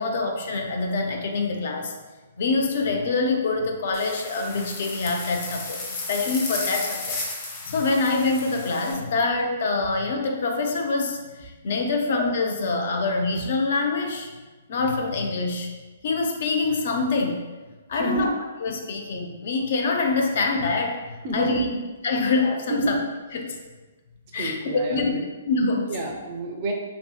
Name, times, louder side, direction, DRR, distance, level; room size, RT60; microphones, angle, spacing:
voice 1, 0.0-1.9 2.4-7.2 7.6-14.3 14.7-15.7 16.0-17.4 17.9-18.3 18.6-21.6 22.0-23.0 23.3-23.6 24.3-24.6 24.9-25.1 25.5-25.9, left 3 dB, 60° left, 3 dB, 0.4 m, -25 dB
sound 1, 3.9-8.9, left 3 dB, 35° left, 0.7 m, -34 dB
voice 2, 17.9-18.3 21.2-21.8 22.7-23.0 24.3-25.3 25.9-26.7, right 2 dB, 40° right, 1 dB, 0.5 m, -28 dB
2.7 x 2.6 x 2.3 m, 1.2 s
hypercardioid pair, 130°, 0 cm